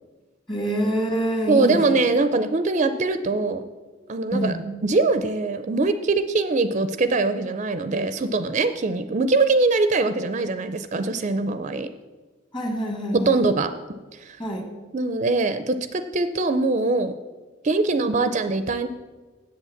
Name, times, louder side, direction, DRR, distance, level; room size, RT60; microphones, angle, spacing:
voice 1, 0.5-1.8 4.3-4.6 12.5-13.4 14.4-14.6, right 1 dB, 25° left, 2 dB, 1.9 m, -25 dB
voice 2, 1.5-3.6 4.1-4.5 4.8-11.9 13.3-13.7 14.1-14.4 14.9-17.1 17.6-18.9, right 3 dB, 40° right, 10 dB, 0.5 m, -22 dB
8.2 x 7.8 x 7.1 m, 1.3 s
head